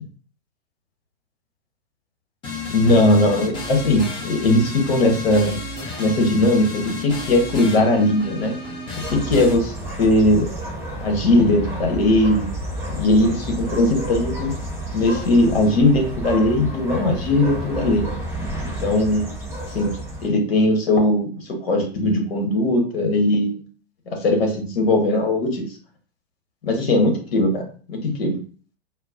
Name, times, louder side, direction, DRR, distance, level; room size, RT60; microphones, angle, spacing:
sound 1, 2.4-9.5, left 3 dB, 15° left, 0.7 m, -31 dB
voice 1, 2.7-5.6 6.0-8.5 9.1-10.5 11.0-12.4 12.9-14.5 14.9-18.1 18.6-19.3 19.7-19.9 20.2-23.6 24.1-25.7 26.6-27.6 27.9-28.4, left 1 dB, 60° left, 2 dB, 1.2 m, -19 dB
sound 2, 9.0-20.3, right 1 dB, 5° right, 1.0 m, -30 dB
4.3 x 2.1 x 2.6 m, 0.41 s
figure-of-eight pair, 105°, 33 cm